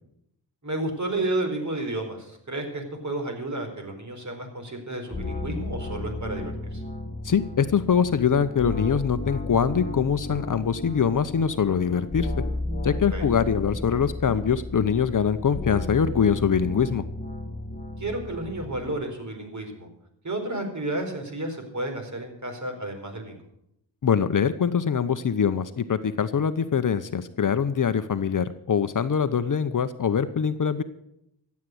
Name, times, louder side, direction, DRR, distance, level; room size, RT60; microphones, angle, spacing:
voice 1, 0.6-6.8 13.1-13.2 18.0-19.9 20.2-23.4, right 2 dB, 40° right, 5 dB, 4.5 m, -31 dB
sound 1, 5.1-18.9, left 2 dB, 20° left, 2.2 m, -34 dB
voice 2, 7.2-12.3 12.8-17.0 24.0-30.8, left 7 dB, 45° left, 11 dB, 0.9 m, -23 dB
14.5 x 8.4 x 7.9 m, 0.78 s
cardioid pair, 55°, 46 cm